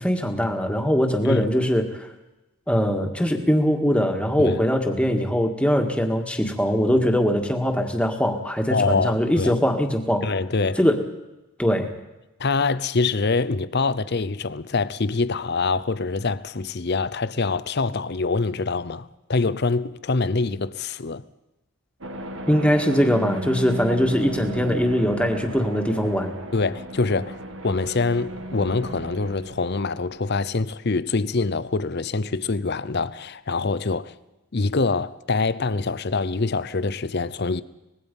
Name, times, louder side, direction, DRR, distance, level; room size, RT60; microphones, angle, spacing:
voice 1, 0.0-2.1 2.7-10.3 10.8-11.0 11.6-11.9 22.5-26.3, equal, 5° left, 1.7 m, -22 dB
voice 2, 8.7-9.5 10.2-10.8 12.4-21.2 23.9-24.0 26.5-34.1 34.5-37.6, left 3 dB, 50° left, 0.7 m, -25 dB
sound 1, 22.0-30.6, right 1 dB, 60° right, 1.7 m, -35 dB
24.5 x 20.0 x 5.4 m
head